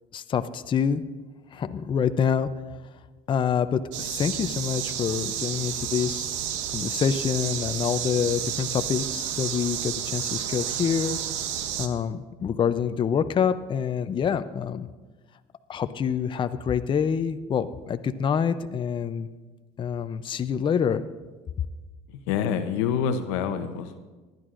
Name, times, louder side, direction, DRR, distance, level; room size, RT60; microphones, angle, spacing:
voice 1, 0.1-1.0 1.5-2.5 3.3-6.3 6.7-11.2 11.8-14.9 15.7-19.3 19.8-21.0, left 7 dB, 35° left, 10 dB, 0.5 m, -26 dB
sound 1, 3.9-11.9, right 9 dB, 90° right, 0.8 m, -31 dB
voice 2, 22.3-24.0, left 7 dB, 85° left, 9 dB, 0.8 m, -26 dB
19.5 x 10.5 x 2.5 m, 1.3 s
supercardioid pair, 85°, 15 cm